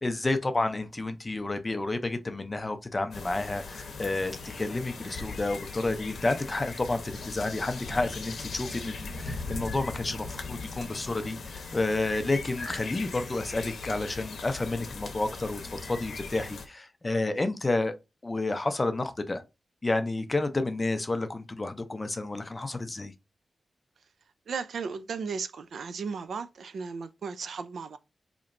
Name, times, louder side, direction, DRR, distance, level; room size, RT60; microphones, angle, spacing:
voice 1, 0.0-18.0 18.2-19.4 19.8-23.1, left 2 dB, 20° left, 0.4 m, -30 dB
sound 1, 3.1-16.7, left 4 dB, 85° left, 0.7 m, -39 dB
voice 2, 24.5-28.0, right 5 dB, 75° right, 0.4 m, -35 dB
4.3 x 2.9 x 2.5 m
wide cardioid pair, 170°, 0 cm